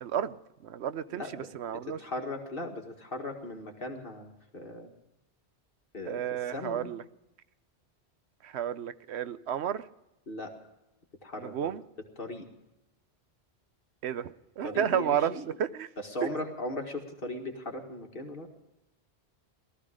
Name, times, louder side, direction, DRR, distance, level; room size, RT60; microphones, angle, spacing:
voice 1, 0.0-0.4 0.6-1.2 1.5-2.0 6.1-7.0 8.4-9.8 11.4-11.8 14.0-15.3 15.6-15.9, right 9 dB, 75° right, 14 dB, 1.0 m, -31 dB
voice 2, 1.1-1.5 1.7-4.9 5.9-6.9 10.3-10.5 11.2-11.7 12.2-12.5 14.6-15.5 16.0-18.5, left 1 dB, 55° left, 2 dB, 2.1 m, -38 dB
18.0 x 14.0 x 5.0 m, 0.91 s
omnidirectional pair, 1.1 m